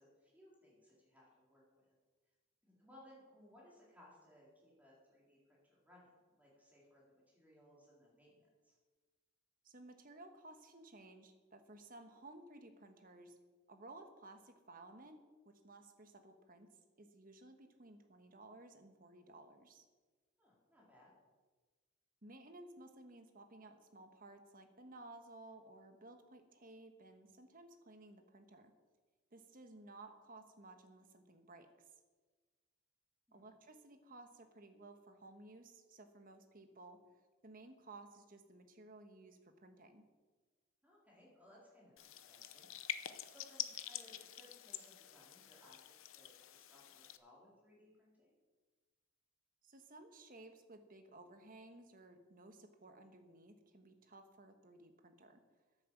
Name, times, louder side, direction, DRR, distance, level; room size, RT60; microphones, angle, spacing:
voice 1, 0.0-1.9 2.6-8.8 20.4-21.1 33.3-33.5 40.8-48.3, left 1 dB, 5° right, -5 dB, 4.0 m, -64 dB
voice 2, 9.6-13.4 13.7-15.2 15.4-16.7 17.0-19.8 22.2-28.7 29.3-31.7 33.3-37.0 37.4-40.0 49.6-55.4, right 2 dB, 40° right, 6 dB, 1.3 m, -57 dB
sound 1, 42.0-47.2, left 11 dB, 65° left, 0.7 m, -47 dB
9.9 x 8.9 x 7.5 m, 1.3 s
head